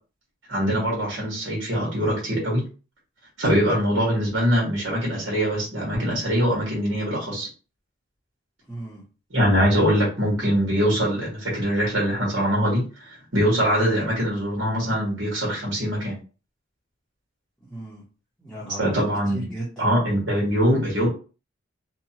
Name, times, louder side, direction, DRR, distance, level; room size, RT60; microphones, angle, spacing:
voice 1, 0.5-2.6 3.4-7.5 9.3-16.2 18.8-19.5 19.8-21.1, equal, 70° right, -3 dB, 1.4 m, -23 dB
voice 2, 8.7-9.0 17.7-18.0 18.4-19.9, right 2 dB, 5° left, -9 dB, 0.9 m, -36 dB
2.8 x 2.3 x 2.8 m, 0.35 s
head